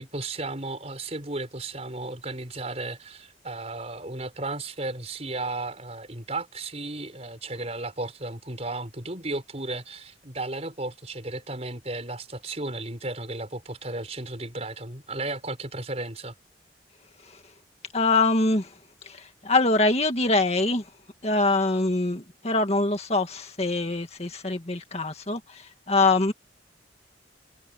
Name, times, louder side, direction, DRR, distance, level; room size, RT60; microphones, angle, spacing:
voice 1, 0.0-16.3, right 2 dB, 35° right, 5.8 m, -34 dB
voice 2, 17.9-18.7 19.1-20.8 21.2-26.3, left 2 dB, 35° left, 2.1 m, -24 dB
head